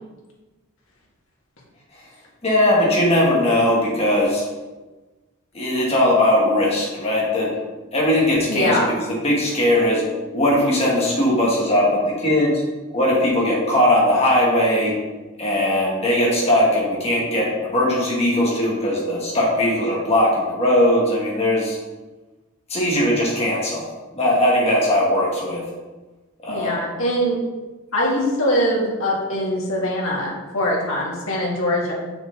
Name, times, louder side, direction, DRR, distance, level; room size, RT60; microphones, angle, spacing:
voice 1, 2.4-4.4 5.5-7.6 7.9-10.0 10.3-12.6 12.9-15.0 15.4-21.8 22.7-23.9 24.1-25.7 26.4-26.8, left 1 dB, 30° left, -4 dB, 2.2 m, -19 dB
voice 2, 8.5-8.9 26.5-27.4 27.9-31.9, equal, 70° left, -4 dB, 2.3 m, -22 dB
7.2 x 6.1 x 4.0 m, 1.2 s
head